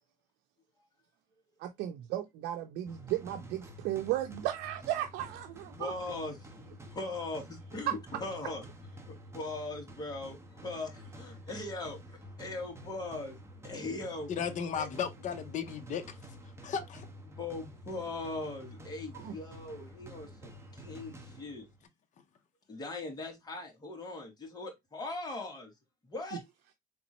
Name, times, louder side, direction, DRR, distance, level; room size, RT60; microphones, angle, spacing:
voice 1, 1.6-5.9 7.9-8.0 19.1-19.4, right 13 dB, 90° right, 0.6 m, -35 dB
sound 1, 2.9-21.8, equal, 15° right, 1.1 m, -50 dB
voice 2, 5.8-6.5 6.9-8.7 9.1-12.0 12.4-13.4 13.6-14.3 14.7-14.9 17.3-21.7 22.7-25.7 26.1-26.4, left 2 dB, 25° left, 2.0 m, -40 dB
voice 3, 14.3-16.2 16.6-17.1, left 7 dB, 45° left, 0.8 m, -35 dB
4.1 x 3.5 x 3.0 m
cardioid pair, 110°, 17 cm